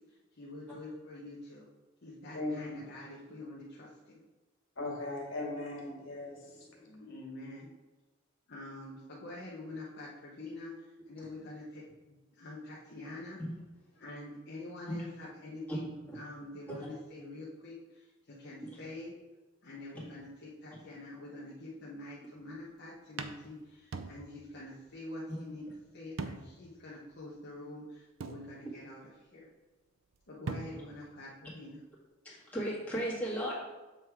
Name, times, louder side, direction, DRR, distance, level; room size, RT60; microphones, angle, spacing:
voice 1, 0.1-1.7 2.0-4.2 6.9-7.7 8.5-11.8 12.1-13.4 14.0-15.9 16.1-19.1 19.6-25.7 25.9-29.5 30.3-31.8, left 2 dB, 55° left, -5 dB, 0.9 m, -46 dB
voice 2, 2.3-2.8 4.8-6.8, left 2 dB, 80° left, -2 dB, 1.8 m, -38 dB
sound 1, 22.4-22.6 23.2-24.6 24.9-25.0 26.2-26.7 27.1-27.2 28.2-29.0 30.1-30.2 30.5-31.1, right 4 dB, 70° right, 0.5 m, -42 dB
voice 3, 32.2-33.5, equal, 10° left, -8 dB, 1.9 m, -35 dB
7.5 x 3.4 x 4.7 m, 1.2 s
head